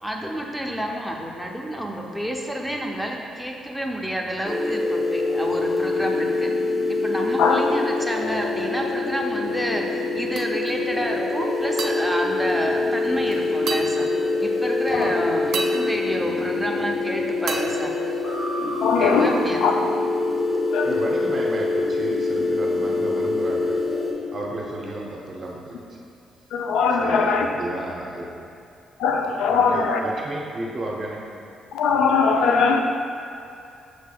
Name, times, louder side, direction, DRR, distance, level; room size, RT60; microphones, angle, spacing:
voice 1, 0.0-6.5 7.0-14.1 14.4-17.9 18.6-19.6, equal, ahead, 0 dB, 0.5 m, -29 dB
sound 1, 4.4-24.1, left 3 dB, 20° left, 1.0 m, -25 dB
sound 2, 10.4-11.0 11.8-13.2 13.7-14.7 15.5-17.0 17.5-18.9, right 4 dB, 70° right, 0.3 m, -35 dB
voice 2, 18.8-19.3 19.6-19.7 20.7-21.0 26.5-27.5 29.0-30.0 31.7-32.8, left 5 dB, 85° left, 3 dB, 0.3 m, -20 dB
voice 3, 20.8-23.8 24.3-26.0 27.0-28.3 29.5-31.2, right 1 dB, 40° right, -2 dB, 0.8 m, -33 dB
6.3 x 3.3 x 2.2 m, 2.5 s
cardioid pair, 90°, 0 cm